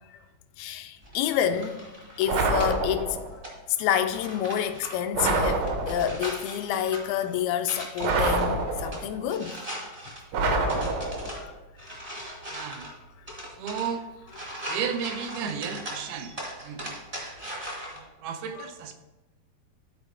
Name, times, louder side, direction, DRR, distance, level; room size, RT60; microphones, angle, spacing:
voice 1, 0.6-1.8 2.2-3.2 3.7-9.6 10.7-11.1 11.4-11.5 11.9-12.2 12.7-13.0 17.8-17.9 18.6-18.7, left 10 dB, 85° left, 2.3 m, -29 dB
sound 1, 1.0-18.0, equal, 30° right, 0.6 m, -41 dB
sound 2, 2.3-3.3 5.1-6.2 8.0-9.2 10.3-11.4, right 3 dB, 70° right, 1.7 m, -26 dB
voice 2, 12.5-12.9 13.6-14.0 14.7-16.4 16.6-16.9 18.2-18.9, right 7 dB, 85° right, 2.6 m, -33 dB
13.0 x 4.5 x 3.3 m
omnidirectional pair, 4.4 m